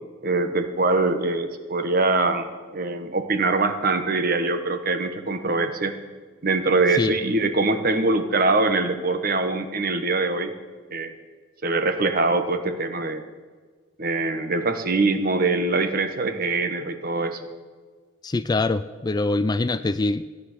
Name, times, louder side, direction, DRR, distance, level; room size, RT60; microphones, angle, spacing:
voice 1, 0.2-5.9 6.4-10.5 10.9-11.1 11.6-13.2 14.0-17.4, right 3 dB, 45° right, 8 dB, 1.1 m, -23 dB
voice 2, 18.2-20.4, left 2 dB, 20° left, 13 dB, 0.3 m, -24 dB
16.5 x 9.7 x 6.6 m, 1.5 s
head